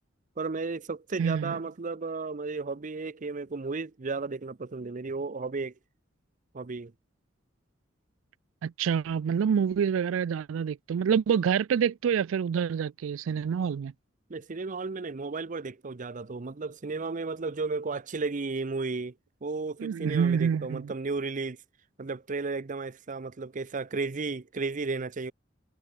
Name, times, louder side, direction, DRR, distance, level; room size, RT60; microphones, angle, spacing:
voice 1, 0.4-5.7 6.5-6.9 14.3-19.1 19.4-21.6 22.0-25.3, right 4 dB, 40° right, 0.7 m, -34 dB
voice 2, 1.2-1.6 8.6-13.9 19.8-20.9, right 7 dB, 90° right, 0.3 m, -27 dB
head